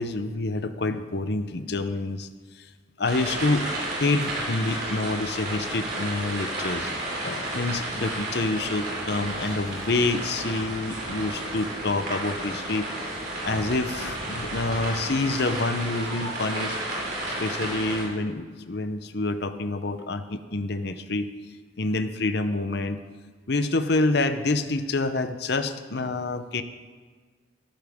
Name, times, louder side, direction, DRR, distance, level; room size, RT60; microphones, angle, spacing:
voice 1, 0.0-2.3 3.0-3.7 4.0-6.9 7.2-12.9 13.4-16.8 17.4-21.3 21.8-23.0 23.5-26.6, left 2 dB, 55° left, 10 dB, 0.7 m, -27 dB
sound 1, 3.0-18.0, right 1 dB, 50° right, 4.5 m, -32 dB
15.0 x 13.5 x 3.6 m, 1.5 s
head